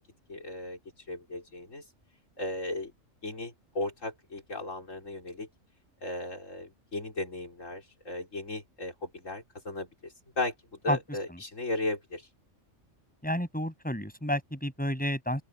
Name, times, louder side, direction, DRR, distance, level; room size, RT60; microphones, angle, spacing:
voice 1, 0.3-0.8 1.1-1.8 2.4-2.9 3.2-5.5 6.0-10.5 10.8-12.3, left 2 dB, 75° left, 5.0 m, -36 dB
voice 2, 13.2-15.4, equal, 5° left, 7.7 m, -30 dB
open air
omnidirectional pair, 1.3 m